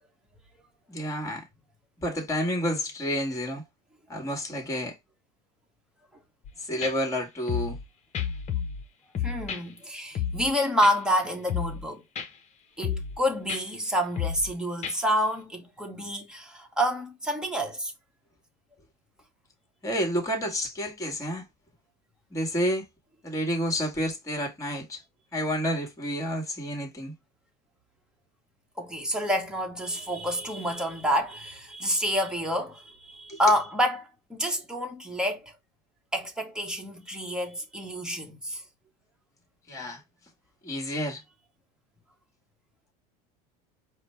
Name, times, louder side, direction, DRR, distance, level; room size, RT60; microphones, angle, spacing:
voice 1, 0.9-1.4 2.0-3.6 4.1-5.0 6.6-7.8 19.8-21.5 22.3-22.9 23.2-25.0 25.3-27.1 33.3-33.4 39.7-40.0 40.6-41.2, equal, 15° left, 2.0 m, -30 dB
sound 1, 6.4-6.5 6.8-6.9 7.5-7.8 8.1-8.9 9.1-9.6 10.1-10.5 10.8-10.9 11.5-11.9 12.2-12.3 12.8-13.2 13.5-13.6 14.2-14.5 14.8-14.9, left 8 dB, 35° left, 1.1 m, -31 dB
voice 2, 9.2-12.0 12.8-17.9 28.8-35.5 36.1-38.6, equal, 5° right, 1.4 m, -28 dB
4.9 x 2.3 x 4.6 m
supercardioid pair, 120°, 20 cm